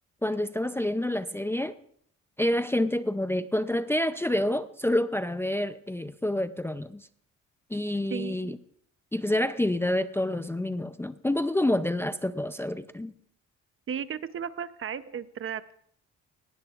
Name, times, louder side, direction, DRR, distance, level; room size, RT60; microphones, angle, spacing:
voice 1, 0.2-1.8 2.4-7.1 7.7-8.6 9.1-13.1, left 1 dB, 10° left, 0.5 m, -28 dB
voice 2, 8.1-8.5 13.9-15.7, right 8 dB, 45° right, 0.7 m, -35 dB
18.0 x 17.5 x 2.4 m
cardioid pair, 90°, 30 cm